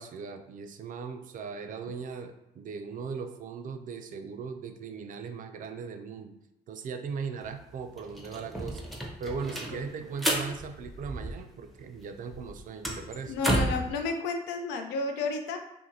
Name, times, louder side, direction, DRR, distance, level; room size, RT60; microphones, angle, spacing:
voice 1, 0.0-6.3 6.7-8.8 9.2-13.4, right 5 dB, 50° right, 7 dB, 0.4 m, -38 dB
sound 1, 7.4-7.5 7.8-11.7 12.0-13.9, right 1 dB, ahead, 0.6 m, -32 dB
voice 2, 13.3-15.6, left 4 dB, 80° left, 5 dB, 0.4 m, -31 dB
2.6 x 2.5 x 2.7 m, 0.86 s
supercardioid pair, 65°, 17 cm